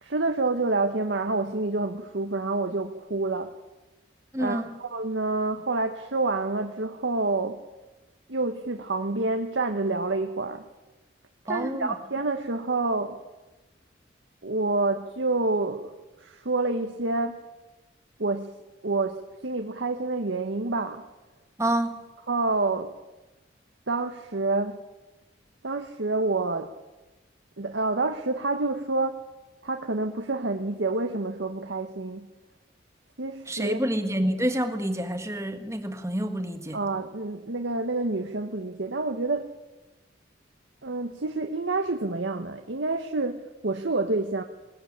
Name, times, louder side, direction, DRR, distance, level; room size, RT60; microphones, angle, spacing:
voice 1, 0.0-3.5 4.4-7.6 8.3-10.6 11.5-13.2 14.4-17.4 18.2-18.5 18.8-21.0 22.3-22.9 23.9-24.8 25.6-26.7 27.6-29.2 29.6-32.3 33.2-33.8 36.7-39.5 40.8-44.4, right 3 dB, 75° right, 5 dB, 1.1 m, -28 dB
voice 2, 4.3-4.8 11.5-12.0 21.6-22.0 33.5-36.8, right 1 dB, 15° right, 7 dB, 1.6 m, -28 dB
21.0 x 19.0 x 8.6 m, 1.1 s
head